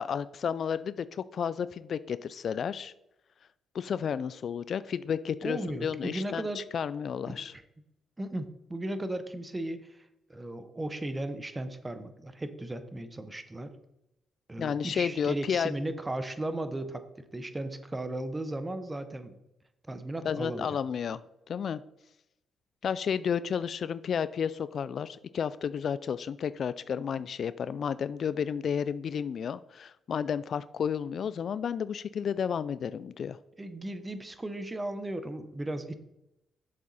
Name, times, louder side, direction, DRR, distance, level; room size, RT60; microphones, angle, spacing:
voice 1, 0.0-2.9 3.7-7.5 14.6-15.7 20.2-21.2 21.5-21.8 22.8-33.4, left 7 dB, 55° left, 16 dB, 0.3 m, -32 dB
voice 2, 5.4-6.7 7.3-7.4 8.2-13.7 14.5-19.4 19.8-20.8 33.6-35.9, right 1 dB, 15° right, 10 dB, 0.9 m, -36 dB
7.4 x 6.9 x 4.1 m, 0.86 s
cardioid pair, 90°, 0 cm